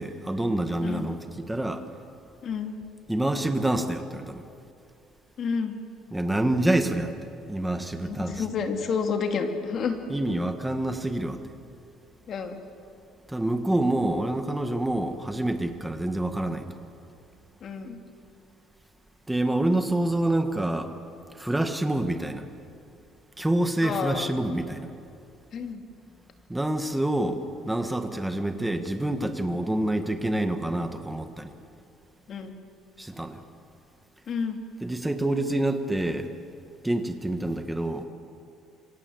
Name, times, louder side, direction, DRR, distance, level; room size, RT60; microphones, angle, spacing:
voice 1, 0.0-1.9 3.1-4.4 6.1-8.4 10.1-11.4 13.3-16.6 19.3-20.9 21.4-22.5 23.4-24.9 26.5-31.5 33.0-33.4 34.8-36.3 36.8-38.0, right 1 dB, 5° right, 7 dB, 1.6 m, -27 dB
voice 2, 2.4-2.8 5.4-5.8 8.0-10.0 12.3-12.6 17.6-18.0 23.8-24.3 25.5-25.8 32.3-32.5 34.3-34.6, left 5 dB, 40° left, 5 dB, 2.7 m, -30 dB
26.5 x 25.0 x 8.0 m, 2.6 s
cardioid pair, 150°, 0 cm